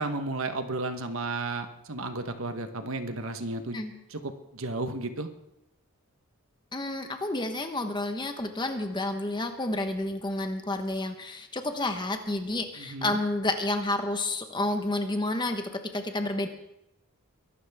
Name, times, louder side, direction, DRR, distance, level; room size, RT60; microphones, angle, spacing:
voice 1, 0.0-3.8 4.1-5.3 12.8-13.2, right 2 dB, 65° right, 8 dB, 1.2 m, -33 dB
voice 2, 6.7-16.5, left 2 dB, 20° left, 6 dB, 1.2 m, -30 dB
23.0 x 12.5 x 3.6 m, 0.84 s
head